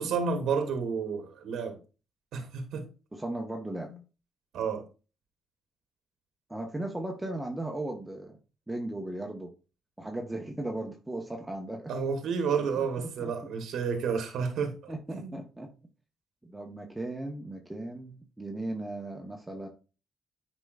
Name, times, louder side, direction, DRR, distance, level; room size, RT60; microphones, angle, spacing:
voice 1, 0.0-1.8 2.3-2.9 3.8-3.9 4.5-4.9 11.9-15.4, right 5 dB, 75° right, 1.2 m, -31 dB
voice 2, 3.1-3.9 6.5-8.4 8.7-9.5 10.0-11.9 12.8-12.9 13.2-13.3 14.9-15.7 16.4-19.7, right 1 dB, 10° right, 1.1 m, -36 dB
8.9 x 5.4 x 2.4 m
cardioid pair, 90°, 0 cm